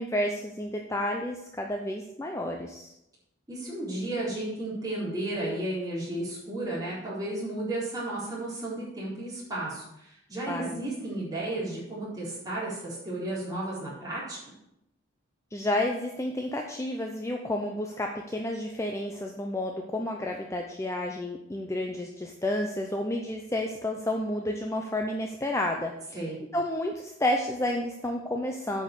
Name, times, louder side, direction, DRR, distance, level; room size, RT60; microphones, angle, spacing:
voice 1, 0.0-2.9 10.5-10.8 15.5-26.2 26.5-28.8, left 1 dB, 15° left, 2 dB, 0.6 m, -31 dB
voice 2, 3.5-14.4 26.1-26.4, right 1 dB, 20° right, -7 dB, 4.0 m, -33 dB
9.0 x 5.3 x 6.6 m, 0.83 s
head